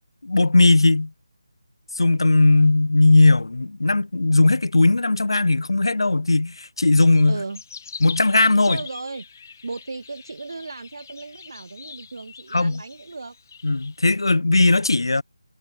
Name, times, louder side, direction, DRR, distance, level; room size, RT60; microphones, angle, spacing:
voice 1, 0.2-1.1 2.0-7.4 8.0-8.8 12.5-12.8 13.6-15.2, left 2 dB, 75° left, 0.4 m, -18 dB
sound 1, 7.1-14.2, left 6 dB, 40° left, 1.1 m, -42 dB
voice 2, 7.3-7.6 8.7-9.3 9.6-13.4, right 3 dB, 60° right, 1.5 m, -35 dB
figure-of-eight pair, 160°, 2 cm